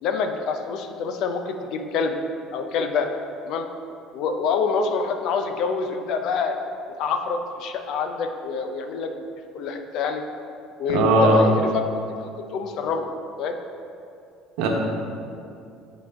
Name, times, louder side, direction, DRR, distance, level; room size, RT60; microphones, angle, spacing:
voice 1, 0.0-2.2 2.5-3.1 3.5-3.7 4.1-6.6 7.0-9.2 9.5-10.2 10.8-11.9 12.2-13.1 13.4-13.5, left 5 dB, 55° left, 6 dB, 0.5 m, -26 dB
voice 2, 10.9-11.4 14.6-14.7, right 2 dB, 75° right, 0 dB, 1.1 m, -17 dB
9.3 x 4.0 x 3.6 m, 2.5 s
cardioid pair, 160°, 0 cm